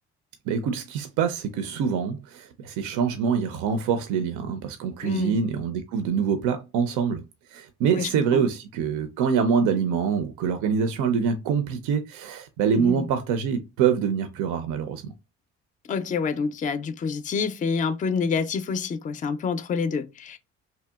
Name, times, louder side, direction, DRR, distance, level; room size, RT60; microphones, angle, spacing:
voice 1, 0.5-7.2 7.5-15.1, right 6 dB, 75° right, 0.5 m, -25 dB
voice 2, 5.0-5.4 7.9-8.4 12.7-13.1 15.9-20.4, left 5 dB, 25° left, 0.4 m, -27 dB
2.8 x 2.0 x 2.2 m
supercardioid pair, 70°, 31 cm